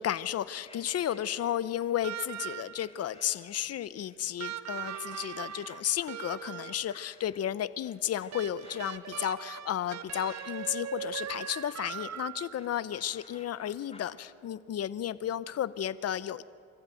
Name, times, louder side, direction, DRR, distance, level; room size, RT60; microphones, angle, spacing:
voice 1, 0.0-16.4, left 10 dB, 55° left, 16 dB, 0.8 m, -33 dB
sound 1, 0.7-2.0 2.8-3.6 4.0-4.6 4.9-14.2, left 3 dB, 20° left, 2.9 m, -56 dB
sound 2, 2.0-3.0 4.4-7.0 8.3-12.8 14.1-14.2, right 10 dB, 60° right, 0.9 m, -40 dB
24.0 x 15.0 x 9.1 m, 2.2 s
cardioid pair, 90°, 30 cm